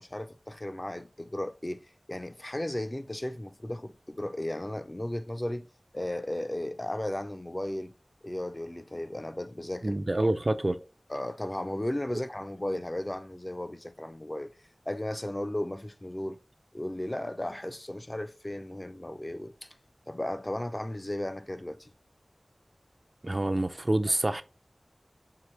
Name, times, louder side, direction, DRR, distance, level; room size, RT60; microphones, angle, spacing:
voice 1, 0.0-5.7 5.9-7.9 8.2-10.0 11.1-14.5 14.9-16.4 16.7-19.7 20.1-21.9, left 1 dB, 30° left, 0.4 m, -35 dB
voice 2, 9.8-10.8 23.2-24.4, right 1 dB, 40° right, 0.5 m, -27 dB
4.7 x 2.9 x 3.1 m
wide cardioid pair, 50°, 0 cm